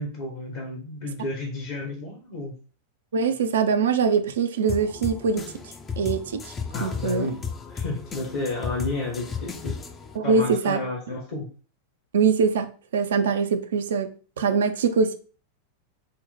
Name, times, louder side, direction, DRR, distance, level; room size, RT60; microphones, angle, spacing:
voice 1, 0.0-2.5 6.7-7.4 7.7-9.8 10.2-11.5, left 2 dB, 55° left, 1.1 m, -31 dB
voice 2, 3.1-5.4 6.0-6.5 6.8-7.3 10.2-10.8 12.1-14.1 14.4-15.1, right 5 dB, 65° right, 0.4 m, -23 dB
sound 1, 4.7-10.2, left 5 dB, 20° left, 0.5 m, -34 dB
3.9 x 2.1 x 4.2 m
figure-of-eight pair, 90°, 0 cm